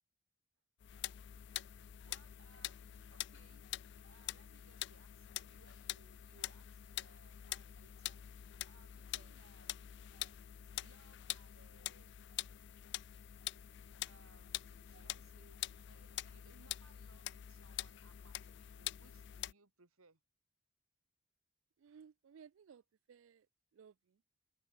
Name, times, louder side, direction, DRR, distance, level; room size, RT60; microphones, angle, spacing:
sound 1, 0.8-19.5, left 13 dB, 55° left, 0.3 m, -46 dB
voice 1, 2.0-3.6 4.0-9.9 10.8-12.2 14.0-20.2, right 4 dB, 85° right, 2.3 m, -68 dB
voice 2, 21.8-22.8 23.1-23.5 23.7-24.2, right 7 dB, 70° right, 0.4 m, -60 dB
head